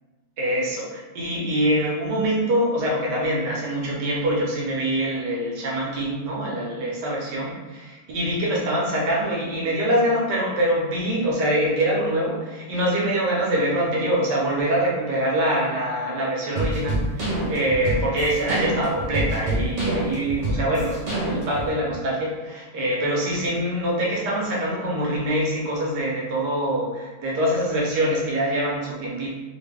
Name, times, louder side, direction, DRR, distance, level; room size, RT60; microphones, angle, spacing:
voice 1, 0.4-29.3, right 1 dB, 80° right, -4 dB, 1.4 m, -24 dB
sound 1, 16.5-21.7, right 1 dB, 45° right, 0.5 m, -26 dB
3.2 x 2.3 x 3.3 m, 1.2 s
omnidirectional pair, 1.8 m